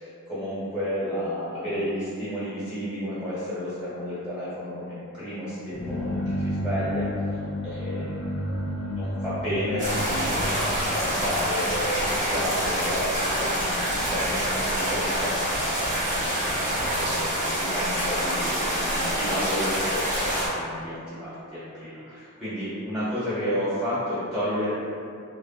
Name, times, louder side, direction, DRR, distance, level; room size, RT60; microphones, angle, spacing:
voice 1, 0.3-7.1 7.6-8.5 8.8-16.5 16.8-24.7, equal, 5° right, -13 dB, 1.3 m, -32 dB
sound 1, 5.7-13.5, left 1 dB, 70° left, 0.4 m, -32 dB
sound 2, 9.8-20.5, equal, 35° right, 1.0 m, -26 dB
3.3 x 2.4 x 2.5 m, 2.5 s
head